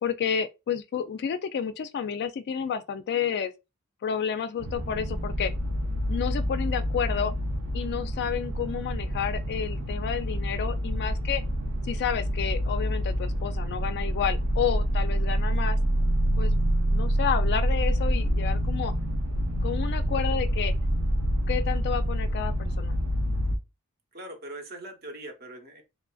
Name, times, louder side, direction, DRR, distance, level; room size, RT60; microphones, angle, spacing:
voice 1, 0.0-3.5 4.0-5.5 6.1-7.3 7.7-11.4 11.9-15.8 16.4-16.5 16.9-18.9 19.6-20.7 21.5-23.0, left 7 dB, 50° left, 0.3 m, -30 dB
sound 1, 4.6-23.6, equal, 80° right, 0.6 m, -27 dB
voice 2, 24.1-25.8, right 1 dB, 50° right, 0.8 m, -41 dB
3.1 x 2.5 x 2.3 m
head